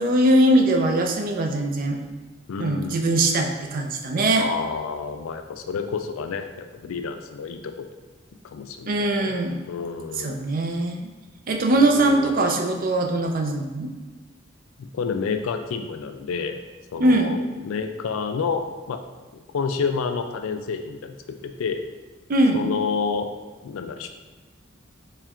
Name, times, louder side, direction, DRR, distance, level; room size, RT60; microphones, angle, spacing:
voice 1, 0.0-2.0 2.6-4.5 8.9-9.6 10.2-11.1 11.5-13.9 17.0-17.3 22.3-22.6, right 1 dB, 45° right, 3 dB, 0.4 m, -21 dB
voice 2, 2.5-3.1 4.4-7.9 8.5-9.3 9.7-10.4 11.7-12.2 14.8-16.6 16.9-19.0 19.5-21.2 21.4-21.8 22.5-23.3 23.6-24.1, left 5 dB, 85° left, 7 dB, 0.4 m, -29 dB
4.3 x 3.3 x 2.4 m, 1.3 s
head